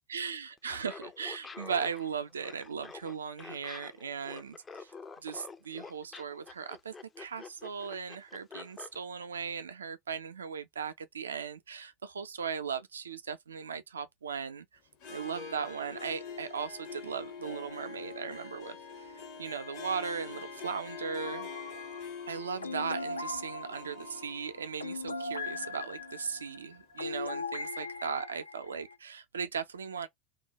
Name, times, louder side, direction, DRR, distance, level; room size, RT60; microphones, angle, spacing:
voice 1, 0.1-4.9 5.2-14.7 15.1-21.5 22.3-30.1, right 6 dB, 75° right, 0.4 m, -38 dB
Laughter, 0.6-8.9, left 4 dB, 20° left, 0.4 m, -47 dB
Harp, 14.9-26.8, left 5 dB, 50° left, 0.7 m, -45 dB
sound 1, 21.2-29.0, left 3 dB, 85° left, 0.4 m, -40 dB
2.4 x 2.2 x 2.8 m
figure-of-eight pair, 80°, 0 cm